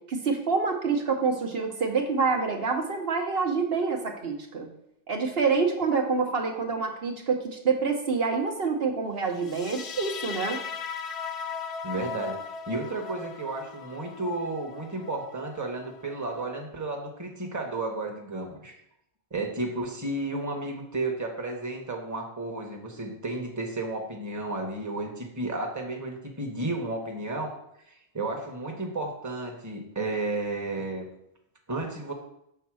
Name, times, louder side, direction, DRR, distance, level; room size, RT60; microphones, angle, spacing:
voice 1, 0.1-4.7 5.1-10.6, right 4 dB, 60° right, 2 dB, 1.2 m, -27 dB
sound 1, 9.4-16.4, left 6 dB, 75° left, 0.9 m, -38 dB
voice 2, 11.8-18.8 19.3-27.5 27.9-31.0 31.7-32.1, right 2 dB, 15° right, 1 dB, 1.1 m, -33 dB
7.0 x 4.1 x 6.1 m, 0.78 s
omnidirectional pair, 1.1 m